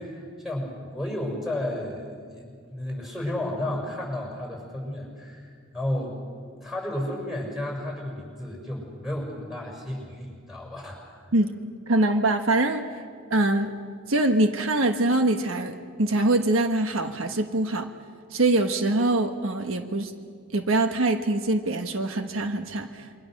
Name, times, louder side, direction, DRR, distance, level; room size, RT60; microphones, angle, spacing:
voice 1, 0.0-6.2 6.6-11.2, left 1 dB, ahead, 0 dB, 6.4 m, -33 dB
voice 2, 11.9-13.0 13.3-13.7 14.1-17.9 18.3-20.1 20.5-23.2, right 2 dB, 75° right, 6 dB, 1.3 m, -24 dB
28.0 x 24.0 x 6.6 m, 2.1 s
head